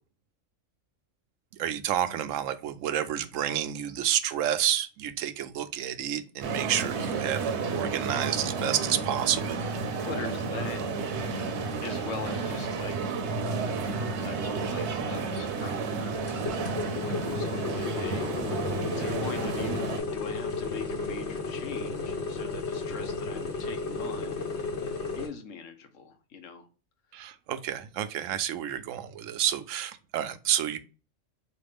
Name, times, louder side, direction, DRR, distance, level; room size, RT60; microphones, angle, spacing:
voice 1, 1.6-9.6 27.1-30.8, right 10 dB, 85° right, 1.0 m, -30 dB
sound 1, 6.4-20.0, right 4 dB, 65° right, 0.9 m, -31 dB
voice 2, 10.0-10.8 11.8-13.1 14.2-16.2 16.8-24.4 25.2-26.7, left 5 dB, 85° left, 1.2 m, -42 dB
sound 2, 16.1-25.3, left 4 dB, 60° left, 1.3 m, -33 dB
4.2 x 3.2 x 3.4 m
omnidirectional pair, 1.3 m